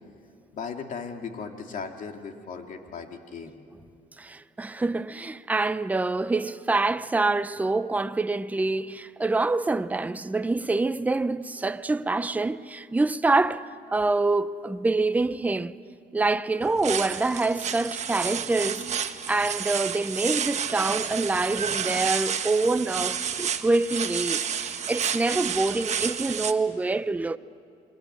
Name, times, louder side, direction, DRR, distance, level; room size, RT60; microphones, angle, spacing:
voice 1, 0.5-3.6, left 5 dB, 50° left, 2.5 m, -37 dB
voice 2, 4.2-15.8 16.1-27.4, right 3 dB, 10° right, 0.6 m, -26 dB
sound 1, 16.6-26.5, right 8 dB, 40° right, 1.2 m, -30 dB
28.0 x 22.0 x 8.0 m
cardioid pair, 110°, 17 cm